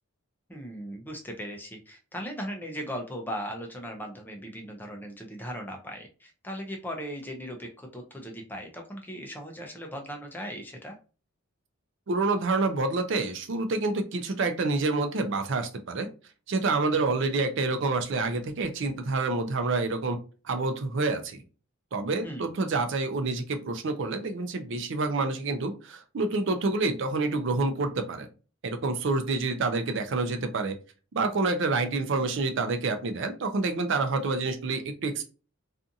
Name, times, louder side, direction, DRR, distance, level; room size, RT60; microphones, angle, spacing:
voice 1, 0.5-11.0 22.2-22.5, equal, 10° left, 2 dB, 0.4 m, -38 dB
voice 2, 12.1-16.1 16.5-20.2 20.4-21.4 21.9-28.3 28.6-30.7 31.1-35.2, right 3 dB, 55° right, 7 dB, 0.4 m, -28 dB
2.5 x 2.4 x 2.6 m, 0.35 s
head